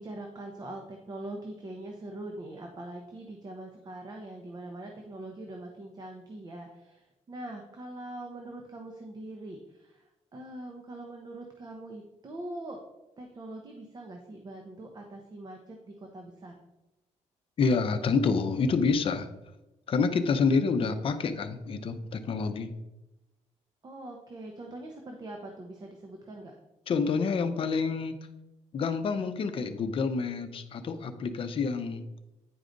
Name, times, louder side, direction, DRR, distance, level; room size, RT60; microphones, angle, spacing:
voice 1, 0.0-10.0 10.3-12.8 13.2-16.5 23.8-26.5, right 1 dB, 30° right, 2 dB, 0.9 m, -42 dB
voice 2, 17.6-19.3 19.9-22.7 26.9-28.2 28.7-32.0, left 4 dB, 45° left, 8 dB, 0.7 m, -28 dB
9.5 x 4.8 x 3.9 m, 0.98 s
cardioid pair, 140°, 13 cm